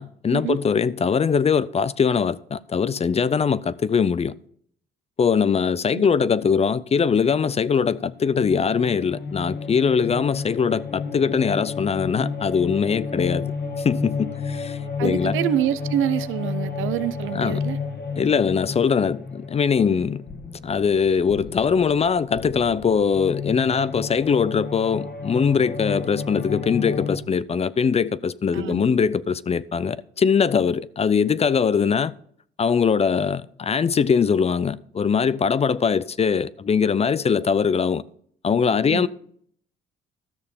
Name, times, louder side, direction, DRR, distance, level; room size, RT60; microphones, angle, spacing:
voice 1, 0.0-4.3 5.2-13.5 13.8-15.4 17.3-17.6 18.2-20.2 20.6-32.1 32.6-38.0 38.4-39.1, left 6 dB, 30° left, 0.5 m, -22 dB
sound 1, 7.9-27.2, left 4 dB, 55° left, 1.9 m, -32 dB
voice 2, 15.0-17.8 28.5-28.8 38.9-39.1, right 11 dB, 85° right, 0.7 m, -26 dB
13.0 x 6.6 x 5.4 m
cardioid pair, 90°, 20 cm